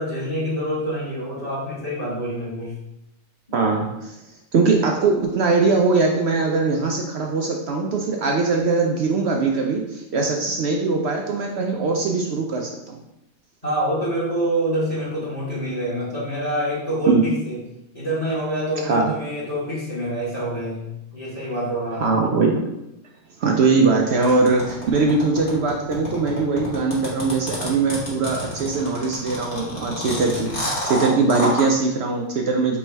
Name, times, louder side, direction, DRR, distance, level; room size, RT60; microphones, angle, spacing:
voice 1, 0.0-2.8 3.5-3.6 13.6-17.6 17.9-22.2, equal, 25° left, -8 dB, 1.3 m, -26 dB
voice 2, 3.5-4.2 4.5-13.0 17.1-17.2 18.8-19.1 22.0-22.5 23.4-32.8, right 4 dB, 70° right, 1 dB, 0.6 m, -21 dB
sound 1, 24.2-31.6, equal, 50° left, 1.5 m, -28 dB
3.5 x 3.1 x 4.4 m, 0.88 s
omnidirectional pair, 1.5 m